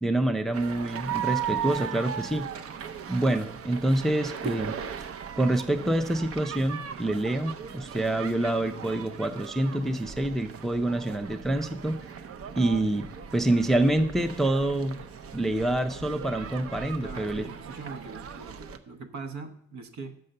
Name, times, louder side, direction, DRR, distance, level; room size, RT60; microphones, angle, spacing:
voice 1, 0.0-2.5 3.1-4.7 5.4-12.0 12.6-15.0 15.3-17.5, right 1 dB, ahead, 7 dB, 0.5 m, -27 dB
sound 1, 0.5-18.8, right 8 dB, 50° right, 0.6 m, -38 dB
voice 2, 17.0-20.1, right 4 dB, 65° right, 6 dB, 1.1 m, -41 dB
6.6 x 5.5 x 6.5 m, 0.70 s
cardioid pair, 90°, 30 cm